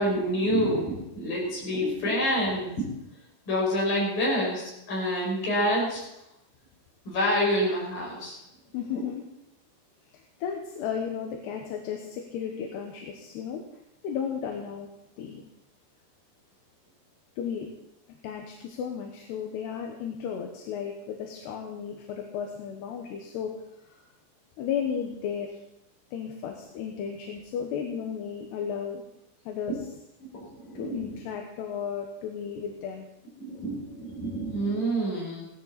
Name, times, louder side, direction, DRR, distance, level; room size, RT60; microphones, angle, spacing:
voice 1, 0.0-2.9 3.5-6.0 7.1-8.4 30.2-31.2 33.4-35.5, equal, 50° left, -3 dB, 7.2 m, -27 dB
voice 2, 8.7-9.2 10.4-13.6 14.0-14.9 15.2-15.4 17.4-17.7 18.2-23.5 24.6-25.6 26.1-29.0 29.5-30.0 30.7-33.1, left 7 dB, 70° left, 2 dB, 3.1 m, -34 dB
17.0 x 13.0 x 4.3 m, 0.86 s
omnidirectional pair, 5.3 m